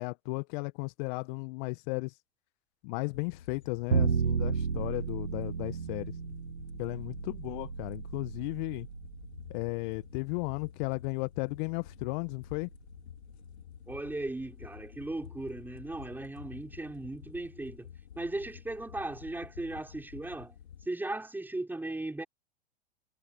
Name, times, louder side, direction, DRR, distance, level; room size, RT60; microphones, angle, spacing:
voice 1, 0.0-2.1 2.8-6.1 6.8-8.9 9.5-12.7, left 28 dB, 45° left, 1.6 m, -35 dB
sound 1, 3.1-20.9, left 9 dB, 75° left, 3.3 m, -50 dB
Bowed string instrument, 3.9-10.1, right 6 dB, 85° right, 2.2 m, -33 dB
voice 2, 13.9-17.9 18.2-20.5 20.9-22.2, right 2 dB, 5° right, 5.9 m, -37 dB
hypercardioid pair, 100°, 33 cm